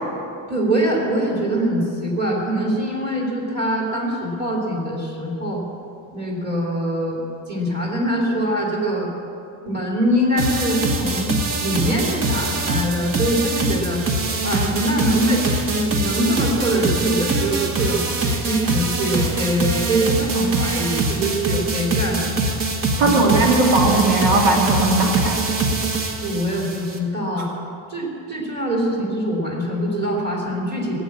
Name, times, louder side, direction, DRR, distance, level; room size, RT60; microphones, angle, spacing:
voice 1, 0.5-5.6 6.1-9.1 9.7-14.0 14.4-22.6 23.0-23.4 26.2-27.5 27.9-30.9, right 1 dB, 25° right, -3 dB, 3.0 m, -23 dB
sound 1, 10.4-27.0, right 3 dB, 45° right, 1.5 m, -23 dB
voice 2, 23.0-25.4, right 2 dB, 85° right, -1 dB, 2.7 m, -18 dB
18.5 x 8.4 x 8.5 m, 2.7 s
cardioid pair, 170°, 45 cm